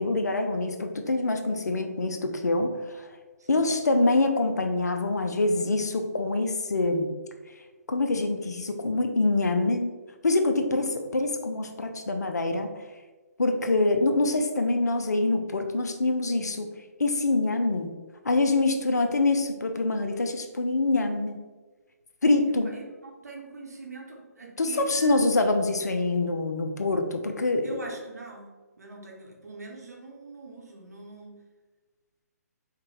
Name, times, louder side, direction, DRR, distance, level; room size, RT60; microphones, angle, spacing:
voice 1, 0.0-3.1 3.5-7.1 7.9-9.9 10.2-12.7 13.4-16.7 17.0-17.9 18.2-21.4 22.2-22.7 24.6-27.8, left 2 dB, 75° left, 5 dB, 0.6 m, -25 dB
voice 2, 22.4-25.4 27.6-28.5 28.8-31.4, right 2 dB, 70° right, 0 dB, 1.1 m, -43 dB
4.0 x 3.3 x 3.3 m, 1.3 s
figure-of-eight pair, 140°, 9 cm